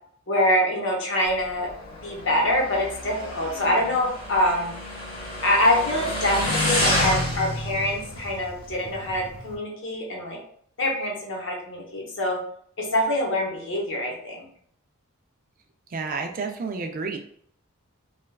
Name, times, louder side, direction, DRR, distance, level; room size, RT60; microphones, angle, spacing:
voice 1, 0.3-1.7 2.0-4.7 5.4-10.4 10.8-12.4 12.8-14.5, left 1 dB, 55° left, -1 dB, 0.8 m, -25 dB
Motorcycle, 1.3-9.5, left 1 dB, 25° left, 0.8 m, -30 dB
voice 2, 15.9-17.2, right 4 dB, 40° right, 4 dB, 0.3 m, -30 dB
3.2 x 2.3 x 2.3 m, 0.62 s
head